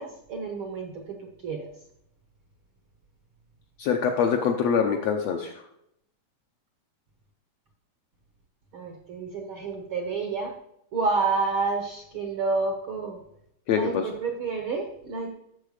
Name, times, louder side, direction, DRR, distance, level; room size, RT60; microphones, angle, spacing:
voice 1, 0.0-1.7 8.7-10.5 10.9-13.2 13.7-15.3, right 4 dB, 60° right, 3 dB, 1.4 m, -29 dB
voice 2, 3.8-5.5 13.7-14.0, left 7 dB, 70° left, 3 dB, 1.7 m, -24 dB
12.0 x 7.4 x 5.0 m, 0.76 s
omnidirectional pair, 3.8 m